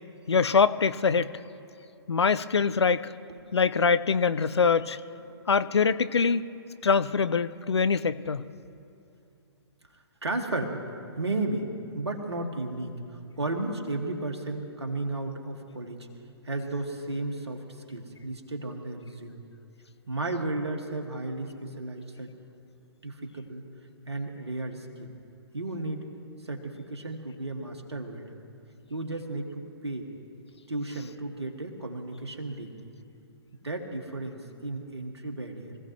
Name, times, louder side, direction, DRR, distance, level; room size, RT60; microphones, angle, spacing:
voice 1, 0.3-1.3 2.1-3.1 3.5-5.0 5.5-6.5 6.8-8.4, left 5 dB, 75° left, 14 dB, 0.5 m, -24 dB
voice 2, 10.2-10.8 11.2-11.7 11.9-16.0 16.4-17.6 17.9-19.4 20.1-22.3 23.0-23.6 24.1-25.1 25.5-26.0 26.4-28.4 28.9-30.1 30.7-32.9 33.6-35.8, right 2 dB, 75° right, 2 dB, 2.0 m, -34 dB
25.0 x 16.0 x 3.1 m, 2.6 s
figure-of-eight pair, 120°, 14 cm